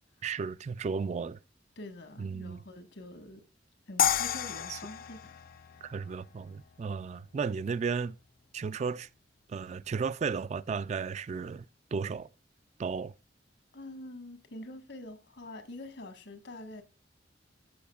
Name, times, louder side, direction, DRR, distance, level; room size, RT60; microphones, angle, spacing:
voice 1, 0.2-1.4 2.2-2.6 4.7-4.8 5.8-8.2 8.5-9.1 9.5-11.6 11.9-12.3 12.8-13.1, right 5 dB, 40° right, 0.3 m, -34 dB
voice 2, 1.8-3.4 3.9-5.3 13.7-16.8, left 1 dB, 75° left, 1.4 m, -45 dB
sound 1, 4.0-7.1, left 8 dB, 50° left, 0.5 m, -32 dB
14.0 x 6.0 x 2.3 m
head